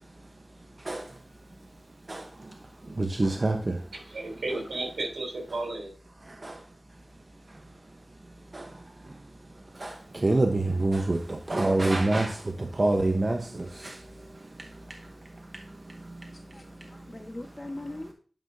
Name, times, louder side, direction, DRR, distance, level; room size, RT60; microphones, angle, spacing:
voice 1, 0.8-1.2 2.1-3.9 6.3-6.6 7.5-7.6 8.5-9.2 9.7-17.1, right 2 dB, 45° right, 0.9 m, -29 dB
voice 2, 3.9-5.9, right 2 dB, 90° right, 3.4 m, -33 dB
voice 3, 16.3-18.1, left 1 dB, 40° left, 1.3 m, -41 dB
10.5 x 5.6 x 2.7 m
wide cardioid pair, 50°, 0 cm